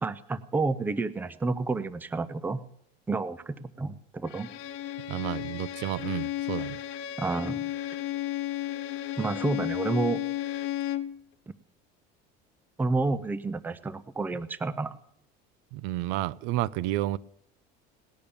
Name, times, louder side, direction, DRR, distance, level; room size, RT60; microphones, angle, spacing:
voice 1, 0.0-2.6 3.1-4.5 7.2-7.7 9.2-10.2 12.8-15.0, right 3 dB, 10° right, 0.5 m, -30 dB
Bowed string instrument, 4.3-11.2, left 13 dB, 65° left, 0.9 m, -33 dB
voice 2, 5.1-6.8 15.7-17.2, right 16 dB, 75° right, 0.6 m, -31 dB
18.5 x 10.0 x 7.0 m
cardioid pair, 155°, 21 cm